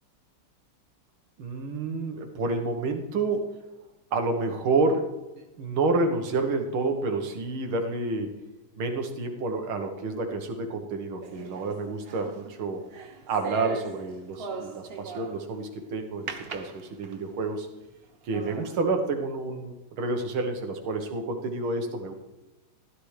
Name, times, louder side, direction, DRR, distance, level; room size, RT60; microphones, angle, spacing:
voice 1, 1.4-3.6 4.1-5.1 5.4-8.3 8.8-12.8 13.3-17.7 18.2-22.1, right 3 dB, 75° right, 5 dB, 2.2 m, -29 dB
Footstep on stairs, 11.2-15.6 16.3-17.4 17.9-18.0 18.3-18.8, right 4 dB, 55° right, 0.6 m, -40 dB
16.0 x 12.0 x 3.3 m, 1.1 s
omnidirectional pair, 2.3 m